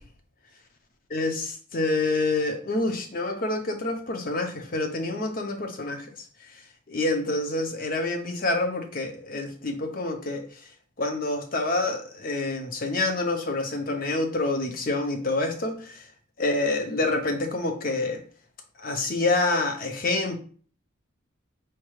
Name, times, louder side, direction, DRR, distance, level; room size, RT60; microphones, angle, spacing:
voice 1, 1.1-6.1 6.9-10.4 11.0-16.0 16.4-18.2 18.8-20.4, left 2 dB, 40° left, 5 dB, 0.6 m, -27 dB
4.5 x 2.3 x 3.1 m, 0.43 s
head